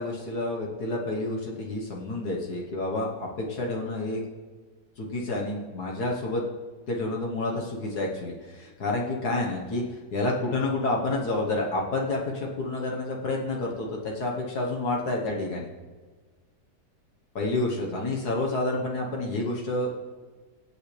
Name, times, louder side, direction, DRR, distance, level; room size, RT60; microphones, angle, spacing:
voice 1, 0.0-4.2 5.0-6.4 6.9-15.7 17.4-19.9, left 2 dB, 65° left, -2 dB, 1.8 m, -29 dB
23.0 x 8.4 x 3.4 m, 1.4 s
omnidirectional pair, 1.8 m